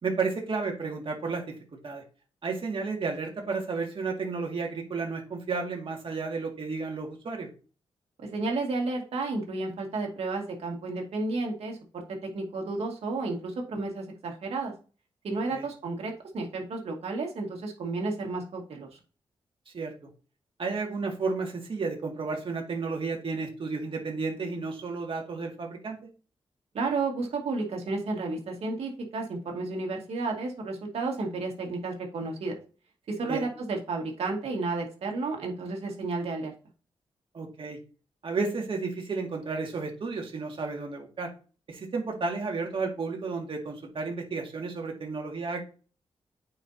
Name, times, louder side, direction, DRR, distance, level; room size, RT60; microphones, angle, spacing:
voice 1, 0.0-1.6 1.8-2.0 2.4-7.5 15.5-15.7 19.7-19.9 20.6-26.0 33.3-33.4 37.3-37.8 38.2-41.3 41.7-45.6, right 4 dB, 55° right, 1 dB, 2.2 m, -32 dB
voice 2, 8.2-12.0 12.3-14.7 15.2-19.0 26.7-32.5 33.1-36.5, right 3 dB, 80° right, 1 dB, 2.2 m, -32 dB
9.0 x 4.7 x 2.8 m, 0.36 s
cardioid pair, 75°, 10 cm